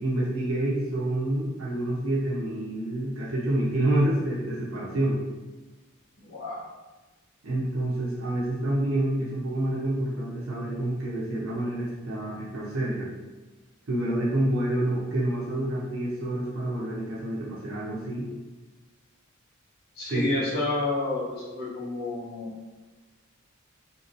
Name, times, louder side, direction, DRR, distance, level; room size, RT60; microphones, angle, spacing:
voice 1, 0.0-5.2 7.4-13.1 13.9-18.3 20.1-20.4, right 1 dB, 75° right, -6 dB, 0.7 m, -28 dB
voice 2, 6.2-6.6 20.0-22.5, left 2 dB, 50° left, -7 dB, 0.8 m, -30 dB
2.9 x 2.8 x 2.5 m, 1.2 s
head